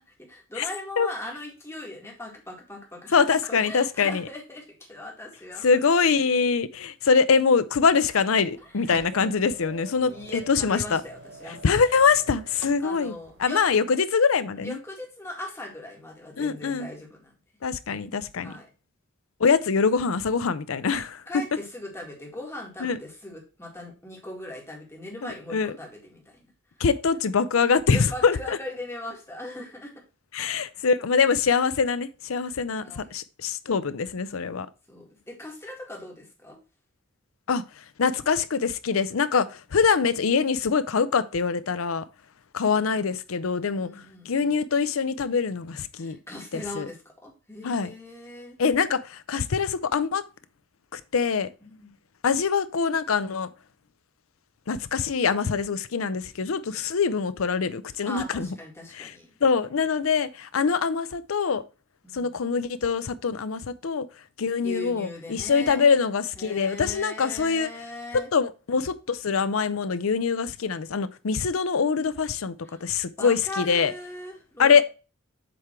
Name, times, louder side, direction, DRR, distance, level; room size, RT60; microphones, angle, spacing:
voice 1, 0.0-5.8 8.6-8.9 10.0-11.6 12.8-13.6 14.6-17.3 18.4-18.7 21.3-26.5 27.8-29.9 32.8-33.1 34.9-36.6 43.8-44.6 46.0-48.6 51.6-51.9 58.0-59.3 62.0-62.4 64.6-65.9 66.4-68.3 72.6-72.9 73.2-74.8, left 1 dB, 15° left, 2.0 m, -39 dB
voice 2, 3.1-4.3 5.6-11.0 11.6-13.1 13.4-14.8 16.4-16.9 17.6-18.5 19.4-21.2 22.8-23.0 25.2-25.7 26.8-28.6 30.3-34.7 37.5-37.6 38.0-42.1 42.5-43.9 44.3-46.2 46.5-46.9 47.6-47.9 48.6-50.2 50.9-51.5 52.2-53.5 54.7-58.5 58.9-59.1 59.4-61.6 62.1-64.1 64.4-67.7 68.3-73.9 74.6-74.8, left 5 dB, 85° left, 0.6 m, -24 dB
sound 1, 7.8-13.8, right 3 dB, 65° right, 0.9 m, -45 dB
7.7 x 3.8 x 4.4 m
head